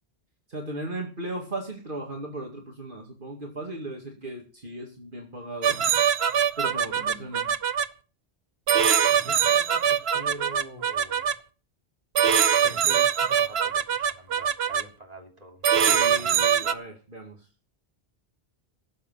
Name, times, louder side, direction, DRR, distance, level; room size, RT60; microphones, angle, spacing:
voice 1, 0.5-5.8 6.6-7.5 15.8-17.5, right 1 dB, 55° right, 0 dB, 2.4 m, -37 dB
sound 1, 5.6-7.9 8.7-11.3 12.2-14.8 15.6-16.7, right 8 dB, 75° right, 1.0 m, -22 dB
voice 2, 6.9-7.5 9.0-11.3 12.6-15.6 15.9-16.4, right 1 dB, 40° right, 1 dB, 3.0 m, -44 dB
18.0 x 7.6 x 5.7 m, 0.37 s
omnidirectional pair, 1.1 m